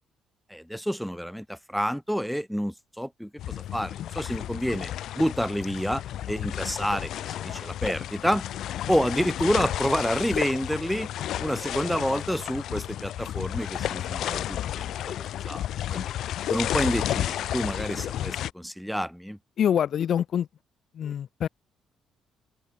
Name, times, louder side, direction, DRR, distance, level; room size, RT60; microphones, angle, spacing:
voice 1, 0.5-6.0 6.3-8.4 8.9-11.1 11.4-15.1 15.4-15.6 15.9-16.1 16.5-19.4, equal, ahead, 1.0 m, -29 dB
sound 1, 3.4-18.5, left 12 dB, 70° left, 1.0 m, -32 dB
voice 2, 19.6-20.5 20.9-21.5, left 9 dB, 55° left, 3.2 m, -25 dB
open air
cardioid pair, 120°, 0 cm